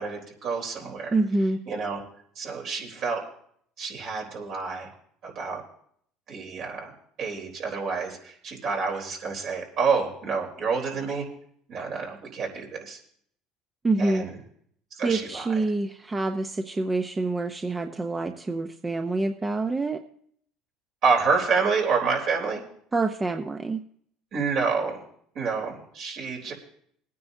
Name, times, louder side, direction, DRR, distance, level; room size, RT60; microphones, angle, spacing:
voice 1, 0.0-1.2 1.7-2.0 2.4-3.2 3.8-4.9 5.2-5.6 6.3-6.9 7.2-11.3 11.7-13.0 14.0-14.4 15.0-15.6 21.0-22.6 24.3-25.0 25.3-26.5, right 5 dB, 55° right, 1 dB, 3.7 m, -28 dB
voice 2, 1.1-1.6 13.8-14.2 15.0-20.0 22.9-23.8, right 2 dB, 20° right, 5 dB, 0.8 m, -26 dB
23.0 x 9.4 x 2.7 m, 0.63 s
supercardioid pair, 95°, 0 cm